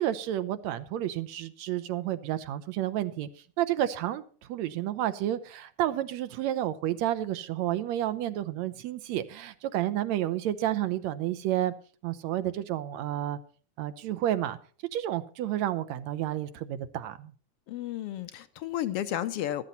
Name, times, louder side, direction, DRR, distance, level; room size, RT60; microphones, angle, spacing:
voice 1, 0.0-3.3 3.6-4.2 4.5-11.7 12.0-13.4 13.8-14.6 14.9-17.3, right 12 dB, 75° right, 2.0 m, -30 dB
voice 2, 17.7-19.6, left 12 dB, 70° left, 1.5 m, -32 dB
14.5 x 13.0 x 4.1 m
omnidirectional pair, 3.4 m